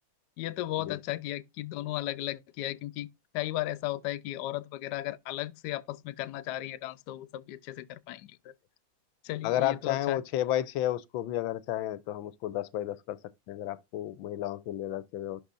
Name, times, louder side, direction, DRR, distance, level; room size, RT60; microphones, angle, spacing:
voice 1, 0.4-3.1 3.3-8.3 9.2-10.2, left 15 dB, 70° left, 1.1 m, -35 dB
voice 2, 9.4-13.2 13.5-15.4, left 13 dB, 90° left, 1.4 m, -32 dB
11.5 x 4.1 x 2.5 m
omnidirectional pair, 2.1 m